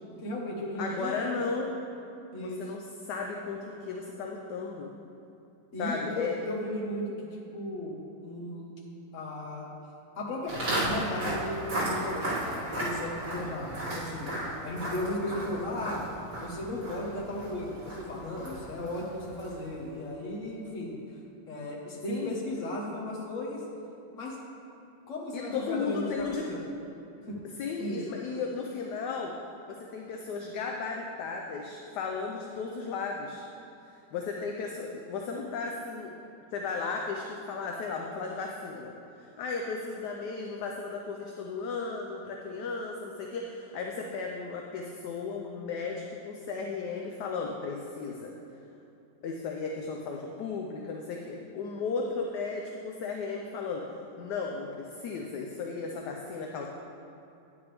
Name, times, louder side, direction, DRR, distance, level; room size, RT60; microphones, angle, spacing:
voice 1, 0.2-1.3 2.3-2.6 5.7-7.9 8.2-8.7 9.1-9.7 10.2-10.5 10.8-14.3 14.6-16.1 16.4-21.0 21.5-23.6 24.1-24.4 25.1-26.6 27.3-27.4 27.8-28.0, left 1 dB, 45° left, -4 dB, 1.7 m, -35 dB
voice 2, 0.8-1.8 2.4-4.9 5.8-6.5 22.1-22.4 25.3-26.5 27.6-29.3 29.7-33.4 33.9-36.1 36.5-38.9 39.2-48.3 49.2-56.7, left 4 dB, 70° left, 1 dB, 1.1 m, -35 dB
Walk footsteps, 10.5-19.7, right 1 dB, 85° right, 3.3 m, -35 dB
9.8 x 8.8 x 3.4 m, 2.8 s
omnidirectional pair, 2.1 m